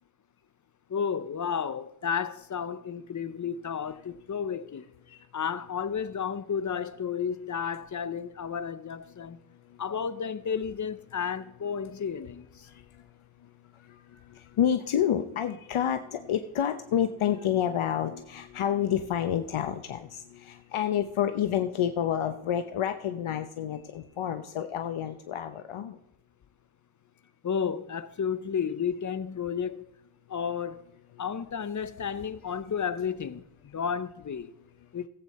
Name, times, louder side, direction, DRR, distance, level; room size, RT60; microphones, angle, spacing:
voice 1, 0.9-4.9 5.3-9.4 9.8-12.7 27.4-29.8 30.3-30.8 31.2-34.5 34.9-35.0, left 7 dB, 40° left, 0.6 m, -32 dB
voice 2, 12.6-13.1 13.7-26.0, left 9 dB, 75° left, 0.8 m, -29 dB
17.5 x 8.2 x 4.2 m
wide cardioid pair, 140°, 50 cm